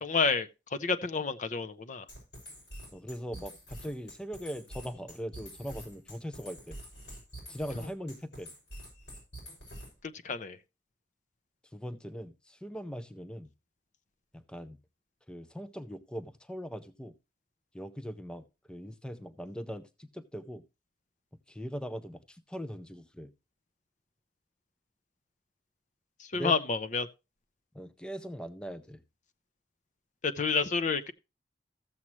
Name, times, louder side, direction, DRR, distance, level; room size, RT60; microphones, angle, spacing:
voice 1, 0.0-2.0 10.0-10.6 26.2-27.1 30.2-31.1, left 4 dB, 45° left, 0.6 m, -30 dB
sound 1, 2.1-10.1, equal, 75° left, 6.4 m, -46 dB
voice 2, 2.9-6.8 7.5-8.5 11.7-13.5 14.3-14.8 15.3-17.1 17.7-20.6 21.5-23.3 26.3-26.6 27.7-29.0, equal, 5° left, 0.5 m, -40 dB
14.0 x 7.3 x 3.1 m
head